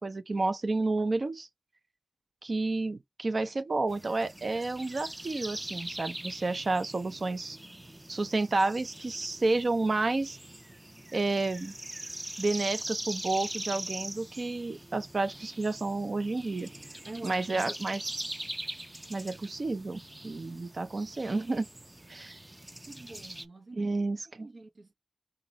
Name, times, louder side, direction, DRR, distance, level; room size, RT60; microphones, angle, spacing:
voice 1, 0.0-1.5 2.4-7.6 8.1-10.4 11.1-11.7 12.4-16.7 17.2-18.0 19.1-21.7 22.1-22.4 23.8-24.5, right 3 dB, 55° right, 0.7 m, -30 dB
sound 1, 3.9-23.5, right 1 dB, 20° right, 0.6 m, -42 dB
voice 2, 17.0-17.7 22.9-24.9, right 2 dB, 70° right, 1.2 m, -46 dB
3.8 x 3.0 x 4.0 m
wide cardioid pair, 90°, 0 cm